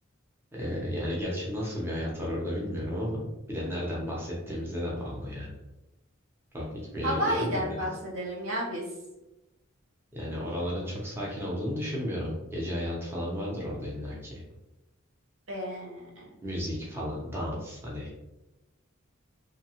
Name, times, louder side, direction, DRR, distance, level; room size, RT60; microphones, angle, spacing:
voice 1, 0.5-3.2 3.5-5.5 6.5-6.6 6.9-7.9 10.1-14.3 16.4-18.1, equal, 10° right, -5 dB, 0.6 m, -33 dB
voice 2, 7.0-8.9 15.5-16.3, equal, 70° right, -3 dB, 0.7 m, -31 dB
2.6 x 2.2 x 2.8 m, 0.98 s
head